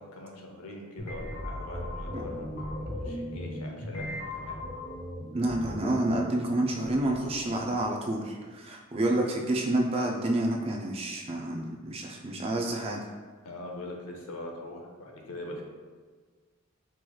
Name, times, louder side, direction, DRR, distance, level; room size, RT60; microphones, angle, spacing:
voice 1, 0.0-2.5 3.0-4.6 13.4-15.6, left 1 dB, 85° left, 0 dB, 0.7 m, -42 dB
sound 1, 1.0-7.9, left 1 dB, 35° left, 0.6 m, -38 dB
voice 2, 5.3-13.0, right 1 dB, 25° right, 0 dB, 0.3 m, -29 dB
4.6 x 3.0 x 2.3 m, 1.5 s
head